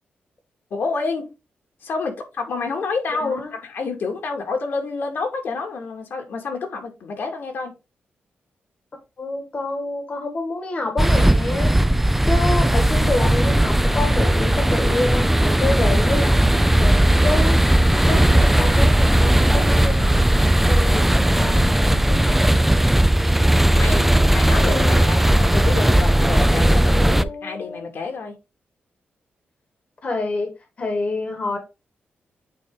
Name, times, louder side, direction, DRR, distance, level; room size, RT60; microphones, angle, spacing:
voice 1, 0.7-1.3 1.8-7.7 23.7-28.4, left 4 dB, 70° left, 2.2 m, -28 dB
voice 2, 3.1-3.5 9.2-11.7 12.3-20.3 20.7-22.4 24.6-25.2 26.8-27.9 30.0-30.5 30.8-31.6, left 2 dB, 40° left, 1.4 m, -28 dB
sound 1, 11.0-27.2, right 1 dB, 5° right, 0.4 m, -17 dB
8.5 x 3.7 x 3.7 m
wide cardioid pair, 125°, 4 cm